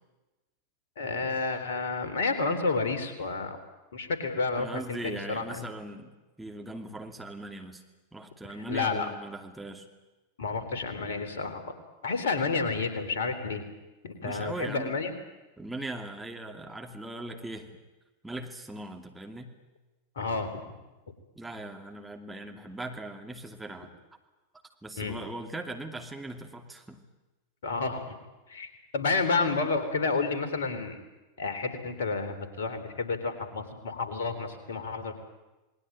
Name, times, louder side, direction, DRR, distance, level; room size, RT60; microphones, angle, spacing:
voice 1, 1.0-3.6 3.9-5.7 8.7-9.1 10.4-11.7 12.0-13.6 14.0-15.1 20.2-20.6 25.0-25.2 27.6-28.1 28.5-31.0 31.4-35.1, left 4 dB, 60° left, 9 dB, 3.6 m, -30 dB
voice 2, 4.6-6.1 6.4-7.8 8.1-9.8 14.2-15.0 15.6-17.8 18.2-19.5 21.4-23.9 24.8-27.0, right 2 dB, 5° right, 3 dB, 2.6 m, -39 dB
28.0 x 20.5 x 9.0 m, 1.1 s
figure-of-eight pair, 90°, 0 cm